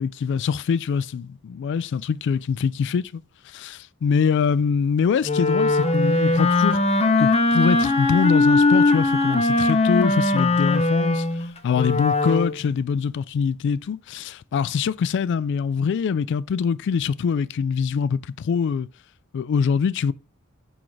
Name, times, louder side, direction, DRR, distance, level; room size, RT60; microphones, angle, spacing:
voice 1, 0.0-3.2 3.5-6.8 7.2-11.3 11.6-18.9 19.3-20.1, left 6 dB, 55° left, 0.3 m, -24 dB
Wind instrument woodwind instrument, 5.2-12.6, left 2 dB, 30° left, 0.7 m, -20 dB
6.2 x 5.9 x 3.2 m
head